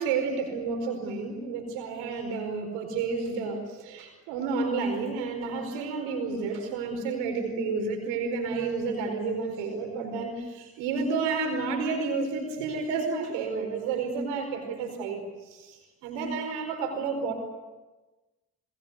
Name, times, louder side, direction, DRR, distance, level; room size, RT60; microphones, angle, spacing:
voice 1, 0.0-17.3, right 4 dB, 90° right, 4 dB, 5.0 m, -31 dB
29.5 x 20.5 x 8.1 m, 1.2 s
hypercardioid pair, 40°, 44 cm